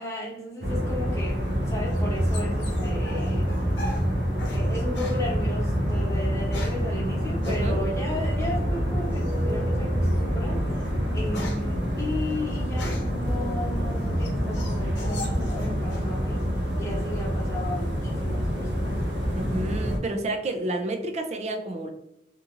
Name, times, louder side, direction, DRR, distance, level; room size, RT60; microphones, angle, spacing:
voice 1, 0.0-1.4 1.7-3.5 4.5-10.6 11.1-16.4 16.8-19.0, left 1 dB, 15° left, -5 dB, 1.0 m, -34 dB
sound 1, 0.6-20.0, equal, 85° right, 0.7 m, -26 dB
sound 2, 1.3-4.6 4.9-5.2 6.2-6.9 7.4-7.6 9.1-9.5 10.0-10.2 10.6-13.2 13.8-16.1 16.4-17.0, left 2 dB, 85° left, 0.8 m, -40 dB
voice 2, 7.4-7.8 19.4-21.9, right 2 dB, 40° right, 5 dB, 0.4 m, -30 dB
2.9 x 2.6 x 2.4 m, 0.81 s
head